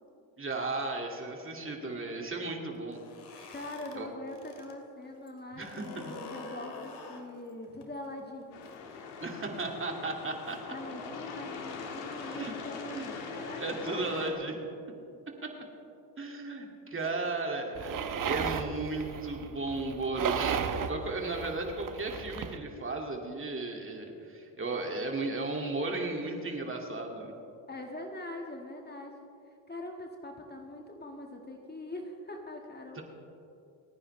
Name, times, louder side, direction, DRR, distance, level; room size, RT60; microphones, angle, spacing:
voice 1, 0.4-3.0 3.3-3.5 3.9-4.1 5.5-6.0 9.2-10.6 12.2-12.5 12.9-13.1 13.6-14.6 15.4-15.5 16.2-27.3 32.9-33.0, right 2 dB, 25° right, 1 dB, 2.4 m, -35 dB
sound 1, 2.8-4.7 5.1-9.8, left 4 dB, 60° left, 2.3 m, -48 dB
voice 2, 3.5-8.6 10.7-14.3 17.0-17.3 27.7-29.1 29.7-33.0, left 1 dB, 20° left, 2 dB, 1.8 m, -43 dB
sound 2, 8.5-14.3, left 4 dB, 90° left, 1.9 m, -41 dB
sound 3, 17.7-22.6, right 7 dB, 45° right, 1.1 m, -35 dB
29.0 x 9.7 x 3.3 m, 2.7 s
supercardioid pair, 75°, 45 cm